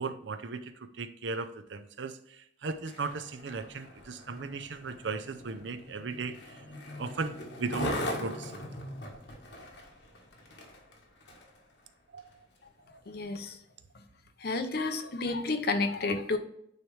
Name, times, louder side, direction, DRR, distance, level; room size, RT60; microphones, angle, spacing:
voice 1, 0.0-6.6 7.0-8.7 12.1-12.3, right 4 dB, 85° right, 11 dB, 0.6 m, -37 dB
Skateboard, 2.7-11.6 12.2-12.3, left 1 dB, 75° left, 1.5 m, -40 dB
voice 2, 13.1-13.6 14.4-16.4, left 3 dB, 60° left, 7 dB, 0.7 m, -31 dB
9.0 x 3.2 x 3.3 m, 0.73 s
head